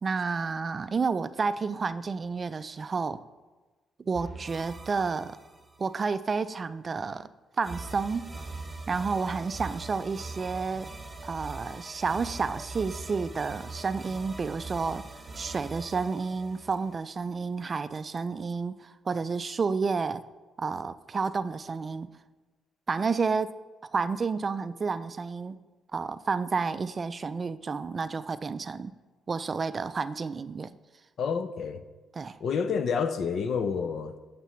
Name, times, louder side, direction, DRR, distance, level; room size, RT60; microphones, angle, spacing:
voice 1, 0.0-3.2 4.1-5.4 5.8-7.3 7.6-8.3 8.9-10.9 11.2-15.0 15.4-20.2 20.6-22.1 22.9-23.6 23.9-25.6 25.9-28.9 29.3-30.7 32.2-32.4, right 4 dB, 35° right, 0.3 m, -30 dB
sound 1, 4.1-6.0 7.6-17.4, right 3 dB, 20° right, 1.1 m, -42 dB
voice 2, 31.2-31.8 32.4-34.1, left 6 dB, 60° left, 0.6 m, -29 dB
9.1 x 6.7 x 3.1 m
cardioid pair, 90°, 0 cm